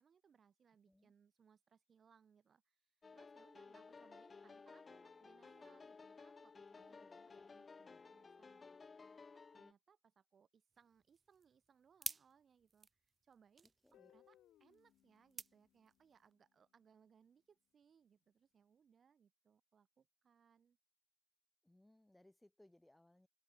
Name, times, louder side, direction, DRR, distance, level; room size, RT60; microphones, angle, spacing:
voice 1, 0.0-20.8, right 7 dB, 50° right, 5.5 m, -71 dB
sound 1, 3.0-9.7, left 4 dB, 35° left, 2.7 m, -57 dB
voice 2, 6.7-7.5 7.9-8.0 13.8-14.2 21.6-23.3, left 1 dB, 10° left, 3.3 m, -68 dB
sound 2, 10.7-16.3, right 4 dB, 35° right, 0.4 m, -53 dB
Guitar, 13.9-16.9, left 12 dB, 80° left, 2.2 m, -71 dB
cardioid pair, 90°, 0 cm